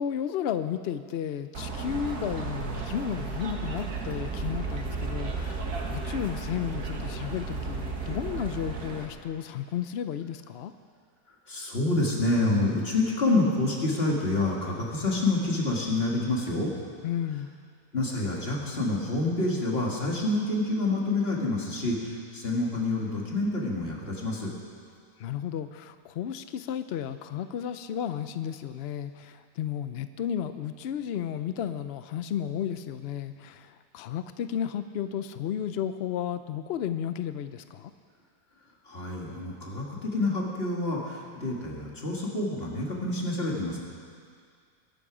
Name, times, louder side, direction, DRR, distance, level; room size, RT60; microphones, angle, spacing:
voice 1, 0.0-10.7 17.0-17.5 25.2-37.9, left 9 dB, 75° left, 10 dB, 0.5 m, -33 dB
sound 1, 1.5-9.1, right 4 dB, 75° right, 2.0 m, -34 dB
voice 2, 11.5-16.7 17.9-24.5 38.9-43.8, left 2 dB, 40° left, -2 dB, 2.5 m, -27 dB
22.5 x 11.5 x 4.9 m, 2.1 s
omnidirectional pair, 1.6 m